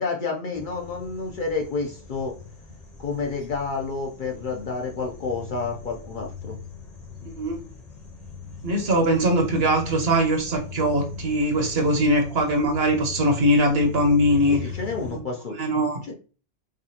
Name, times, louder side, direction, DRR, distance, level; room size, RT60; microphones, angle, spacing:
voice 1, 0.0-2.4 3.0-6.6 14.5-15.6 16.1-16.2, left 4 dB, 55° left, 1 dB, 0.6 m, -29 dB
sound 1, 0.5-15.2, left 6 dB, 35° left, 1.0 m, -40 dB
voice 2, 7.2-7.6 8.6-14.6 15.1-15.2 15.6-16.0, equal, 60° right, 3 dB, 1.1 m, -21 dB
4.9 x 2.3 x 2.7 m, 0.36 s
omnidirectional pair, 1.2 m